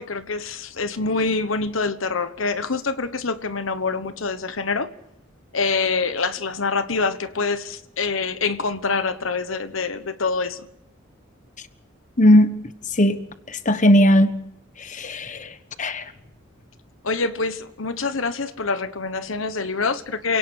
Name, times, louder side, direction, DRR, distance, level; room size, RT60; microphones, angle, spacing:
voice 1, 0.0-4.9 5.5-10.7 17.0-20.4, left 4 dB, 85° left, 1.2 m, -25 dB
voice 2, 12.2-12.6 13.0-13.2 13.5-14.4 14.8-15.5 15.8-16.0, equal, 40° left, 1.4 m, -17 dB
28.5 x 18.0 x 6.4 m
head